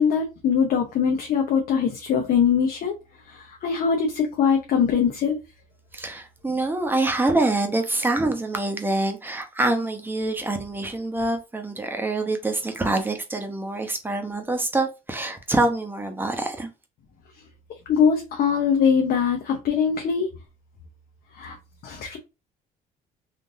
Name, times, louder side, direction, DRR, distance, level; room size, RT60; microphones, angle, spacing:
voice 1, 0.0-2.9 3.3-5.4 17.9-20.3 21.4-21.5 21.8-22.2, left 7 dB, 60° left, 0.7 m, -22 dB
voice 2, 5.9-16.7, right 2 dB, 10° right, 0.8 m, -25 dB
3.6 x 2.6 x 2.6 m
cardioid pair, 110°, 17 cm